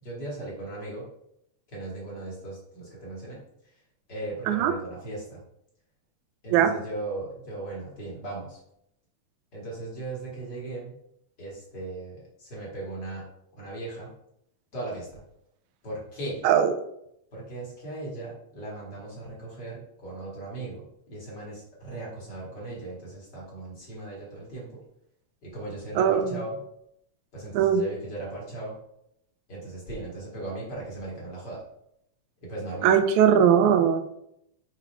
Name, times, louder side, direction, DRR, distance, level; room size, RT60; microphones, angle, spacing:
voice 1, 0.0-1.1 1.7-3.4 4.1-5.4 6.4-8.6 9.5-10.9 11.4-13.3 13.5-14.1 14.7-15.2 15.8-16.4 17.3-24.8 25.4-26.6 27.3-28.8 29.5-31.6 32.4-32.9, right 2 dB, 35° left, -4 dB, 2.6 m, -37 dB
voice 2, 16.4-16.7 26.0-26.4 27.5-27.8 32.8-34.0, right 8 dB, 85° right, 7 dB, 2.0 m, -20 dB
7.2 x 4.1 x 4.6 m, 0.76 s
omnidirectional pair, 3.4 m